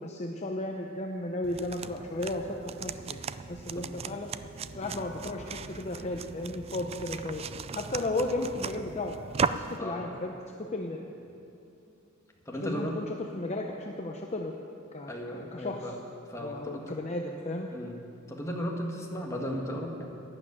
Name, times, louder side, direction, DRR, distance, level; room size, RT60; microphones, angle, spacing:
voice 1, 0.0-3.2 3.5-4.3 4.8-7.4 7.7-9.2 9.5-11.0 12.6-14.5 14.9-15.9 16.3-17.7, left 2 dB, 35° left, 2 dB, 0.8 m, -34 dB
sound 1, 1.4-9.8, right 5 dB, 30° right, 0.4 m, -37 dB
voice 2, 9.8-10.2 12.4-13.0 15.1-16.0 16.3-16.9 17.7-18.0 18.3-20.1, equal, 15° left, 0 dB, 1.6 m, -36 dB
11.5 x 11.0 x 8.8 m, 2.7 s
head